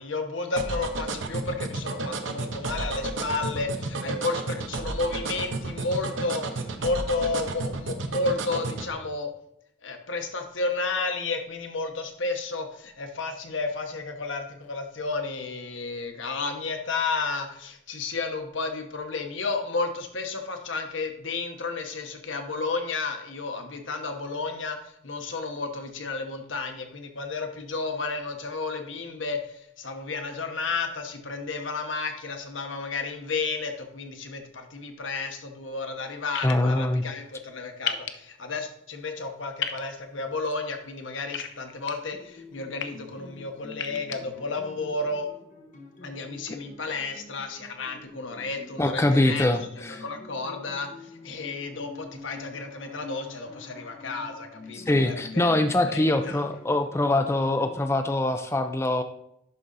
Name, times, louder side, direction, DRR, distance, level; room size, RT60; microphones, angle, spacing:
voice 1, 0.0-9.3 9.8-45.3 46.0-49.5 50.0-55.6 55.9-56.4, left 3 dB, 85° left, 5 dB, 1.1 m, -32 dB
sound 1, 0.6-8.9, right 3 dB, 85° right, 0.8 m, -31 dB
sound 2, 36.3-36.5 37.9-38.1 39.6-39.8 41.3-41.9 42.6-42.9 43.7-44.2, left 8 dB, 65° left, 0.6 m, -31 dB
voice 2, 36.4-37.0 48.8-50.0 54.8-59.0, left 1 dB, 15° left, 7 dB, 0.4 m, -23 dB
sound 3, 42.1-57.9, left 3 dB, 45° left, 1.2 m, -47 dB
11.0 x 3.8 x 4.0 m, 0.75 s
head